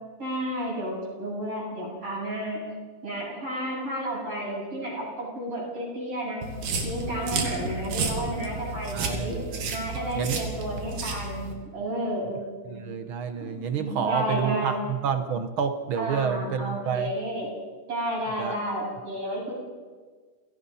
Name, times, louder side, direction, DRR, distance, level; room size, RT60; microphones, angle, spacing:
voice 1, 0.2-2.6 3.0-6.4 6.8-9.4 9.7-12.9 13.4-14.8 16.0-17.5 17.9-19.5, right 1 dB, 45° right, -4 dB, 9.2 m, -32 dB
sound 1, 6.4-11.5, right 3 dB, 85° right, 3.9 m, -32 dB
voice 2, 8.9-9.6 10.1-10.4 12.7-17.1 18.4-18.6, right 7 dB, 60° right, 9 dB, 1.4 m, -29 dB
30.0 x 17.0 x 5.7 m, 1.4 s
omnidirectional pair, 3.6 m